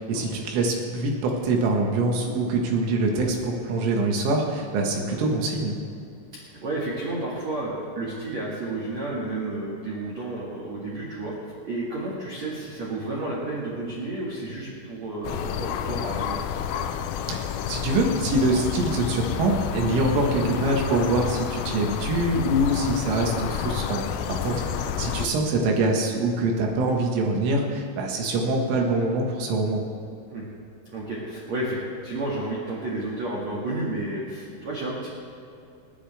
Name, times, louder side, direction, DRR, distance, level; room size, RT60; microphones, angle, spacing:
voice 1, 0.0-5.7 17.3-24.6 25.0-29.8, right 2 dB, 75° right, 0 dB, 3.9 m, -24 dB
voice 2, 4.9-5.2 6.3-11.3 11.6-16.4 20.1-20.3 24.4-25.0 30.3-30.5 30.9-35.1, right 2 dB, 50° right, -6 dB, 2.2 m, -32 dB
sound 1, 15.2-25.3, left 9 dB, 85° left, 3.3 m, -30 dB
29.5 x 9.9 x 3.5 m, 2.6 s
omnidirectional pair, 6.0 m